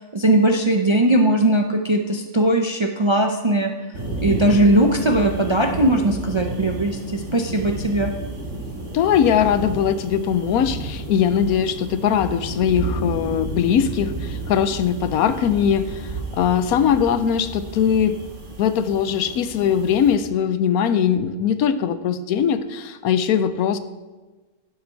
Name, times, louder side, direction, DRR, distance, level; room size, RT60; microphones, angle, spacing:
voice 1, 0.0-3.7 4.2-8.1, right 1 dB, 35° right, 4 dB, 0.4 m, -19 dB
sound 1, 3.9-20.2, right 2 dB, 55° right, 2.4 m, -32 dB
voice 2, 8.9-18.2 18.6-23.8, left 8 dB, 85° left, 12 dB, 1.1 m, -20 dB
12.0 x 8.0 x 4.6 m, 1.2 s
omnidirectional pair, 1.5 m